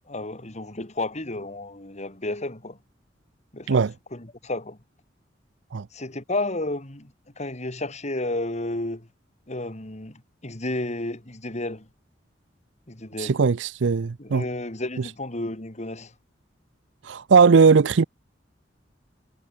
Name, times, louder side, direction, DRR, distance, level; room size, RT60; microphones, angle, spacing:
voice 1, 0.1-2.8 3.5-3.8 4.1-4.8 5.9-9.1 9.5-11.9 12.9-13.4 14.2-16.1, left 2 dB, 40° left, 3.0 m, -32 dB
voice 2, 13.2-14.4 15.0-15.1 17.0-18.0, right 5 dB, 85° right, 0.5 m, -18 dB
head